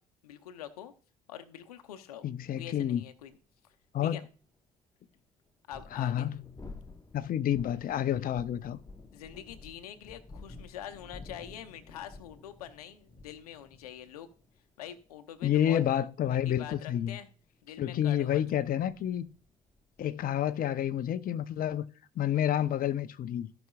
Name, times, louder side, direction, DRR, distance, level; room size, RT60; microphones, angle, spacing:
voice 1, 0.2-0.9 1.3-2.2 2.6-3.3 3.6-3.7 4.0-4.2 5.7-6.3 9.1-14.3 14.8-15.8 16.3-17.3 17.6-18.6, left 10 dB, 90° left, 0.8 m, -45 dB
voice 2, 2.2-3.0 3.9-4.2 5.9-6.4 7.1-8.8 15.4-17.2 17.8-19.3 20.0-21.9 22.2-23.5, left 10 dB, 50° left, 0.7 m, -29 dB
sound 1, 3.3-3.4 5.5-21.1, left 3 dB, 20° left, 1.2 m, -52 dB
16.5 x 6.0 x 2.4 m
hypercardioid pair, 60°, 19 cm